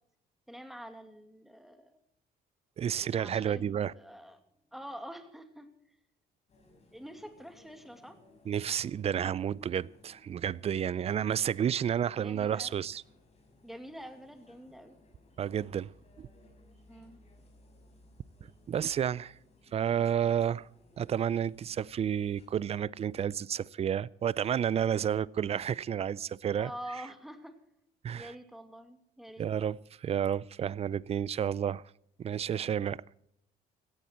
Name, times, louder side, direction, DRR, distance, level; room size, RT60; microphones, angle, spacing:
voice 1, 0.5-2.0 2.9-4.4 4.7-6.0 6.9-8.2 12.2-12.8 13.6-15.0 16.9-17.2 26.6-27.6 28.1-29.5, equal, ahead, 2.4 m, -46 dB
voice 2, 2.8-3.9 8.5-13.0 15.4-15.9 16.2-16.3 18.7-19.3 19.7-20.7 21.0-26.7 28.0-28.3 29.4-31.8 32.2-33.0, right 9 dB, 35° right, 0.5 m, -31 dB
sound 1, 6.5-22.5, left 2 dB, 40° left, 6.4 m, -62 dB
17.0 x 15.0 x 4.5 m
cardioid pair, 110°, 17 cm